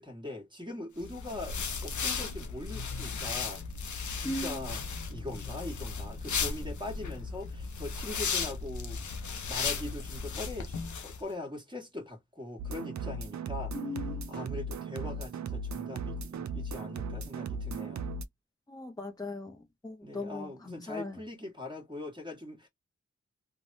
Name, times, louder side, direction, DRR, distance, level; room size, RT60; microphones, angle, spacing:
voice 1, 0.0-3.9 4.1-4.8 5.1-9.0 9.5-13.7 14.3-18.1 20.0-22.7, left 2 dB, 15° right, 1.3 m, -41 dB
sound 1, 1.0-11.2, left 5 dB, 80° left, 0.6 m, -35 dB
voice 2, 4.2-4.6 13.7-14.3 18.7-19.6 19.8-21.1, left 2 dB, 15° left, 0.6 m, -38 dB
sound 2, 12.6-18.2, right 3 dB, 70° right, 0.5 m, -37 dB
3.3 x 2.1 x 2.6 m
wide cardioid pair, 70°, 29 cm